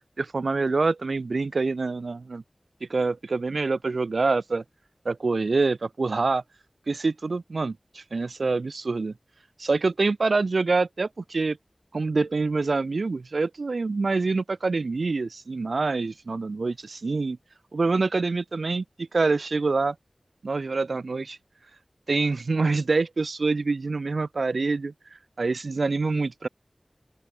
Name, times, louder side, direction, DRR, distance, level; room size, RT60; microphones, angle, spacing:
voice 1, 0.2-2.4 2.9-4.6 5.0-6.4 6.9-9.1 9.6-11.6 11.9-17.4 17.7-19.9 20.4-21.4 22.1-24.9 25.4-26.5, right 3 dB, 85° right, 1.2 m, -26 dB
open air
wide cardioid pair, 45°, 0 cm